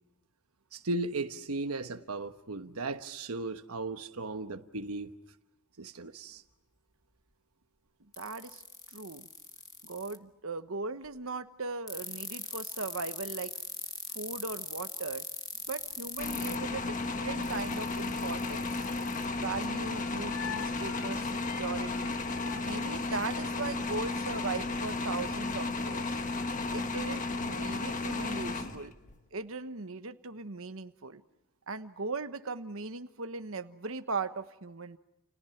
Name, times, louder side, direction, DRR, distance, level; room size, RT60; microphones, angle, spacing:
voice 1, 0.7-5.1 5.8-6.4, right 2 dB, 85° right, 1.2 m, -36 dB
sound 1, 8.1-10.2 11.9-16.6 17.4-19.3, left 5 dB, 15° left, 1.3 m, -40 dB
voice 2, 8.2-8.6 8.9-9.3 9.8-13.5 14.1-15.2 15.7-18.7 19.4-21.2 21.6-22.2 22.6-26.2 26.7-28.9 29.3-31.2 31.7-35.0, right 4 dB, 65° right, 1.2 m, -38 dB
sound 2, 16.2-29.2, left 3 dB, 35° left, 1.5 m, -34 dB
sound 3, 19.5-23.7, left 8 dB, 70° left, 4.4 m, -46 dB
30.0 x 29.5 x 5.9 m
head